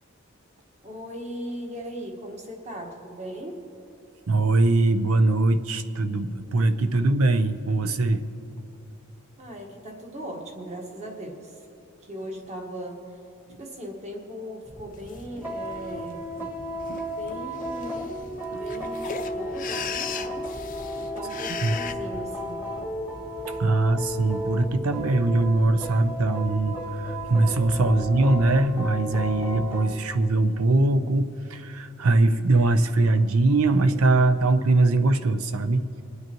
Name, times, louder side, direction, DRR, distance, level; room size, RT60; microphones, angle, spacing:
voice 1, 0.8-3.7 9.4-11.7 12.0-13.2 13.6-16.3 17.1-18.1 18.5-20.5 21.0-22.6 27.9-28.3, equal, 30° right, 1 dB, 1.5 m, -38 dB
voice 2, 4.3-8.2 13.5-13.6 16.9-17.1 18.5-18.6 21.6-21.7 23.6-35.8, right 2 dB, 90° right, 11 dB, 0.7 m, -22 dB
sound 1, 14.6-29.9, equal, 10° right, 1.3 m, -34 dB
sound 2, 15.1-15.2 15.7-16.1 16.8-17.0 17.3-17.4 17.6-21.9, left 7 dB, 40° left, 0.5 m, -36 dB
27.5 x 9.4 x 3.1 m, 2.9 s
head